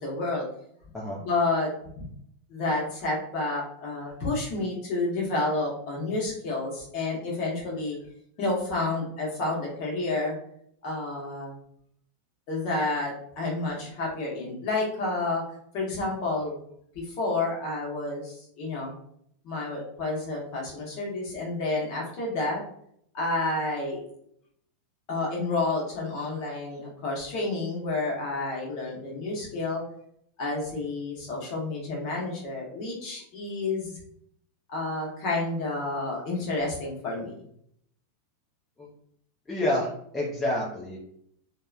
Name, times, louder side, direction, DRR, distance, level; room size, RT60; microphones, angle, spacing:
voice 1, 0.0-0.5 1.2-1.7 2.0-2.1 2.5-8.0 8.4-10.3 10.8-11.5 12.5-15.4 15.7-16.6 16.9-18.9 19.4-22.6 23.1-24.0 25.1-29.8 30.4-34.0 34.7-37.3, left 2 dB, 40° left, -3 dB, 0.9 m, -30 dB
voice 2, 39.5-41.0, left 1 dB, 10° left, -5 dB, 0.4 m, -28 dB
2.8 x 2.1 x 2.3 m, 0.69 s
supercardioid pair, 170°, 0 cm